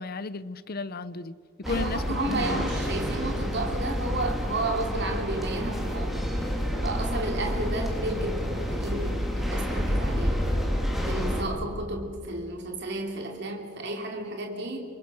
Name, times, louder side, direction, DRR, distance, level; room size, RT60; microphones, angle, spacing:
voice 1, 0.0-1.3 1.6-2.6, left 3 dB, 50° left, 0.8 m, -34 dB
sound 1, 1.6-11.4, equal, ahead, 3.7 m, -29 dB
voice 2, 1.7-6.3 6.8-10.4 11.0-14.8, right 2 dB, 60° right, 3.0 m, -32 dB
27.5 x 25.0 x 6.2 m
head